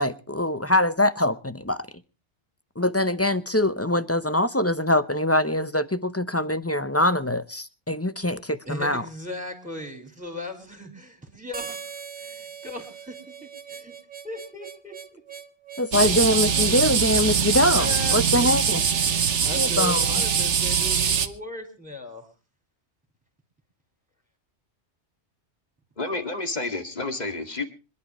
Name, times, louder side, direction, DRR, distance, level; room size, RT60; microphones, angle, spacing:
voice 1, 0.0-1.9 2.8-9.0 15.8-18.8 19.5-20.2, left 1 dB, 15° left, 0.6 m, -23 dB
voice 2, 8.6-14.0 14.2-15.3 17.4-18.5 19.0-22.3, left 2 dB, 5° right, 4.6 m, -38 dB
Harmonica, 11.5-16.8, right 7 dB, 45° right, 1.4 m, -40 dB
sound 1, 15.9-21.3, right 7 dB, 85° right, 1.4 m, -22 dB
voice 3, 26.0-27.6, left 2 dB, 35° left, 2.4 m, -30 dB
26.0 x 11.5 x 3.1 m
omnidirectional pair, 1.2 m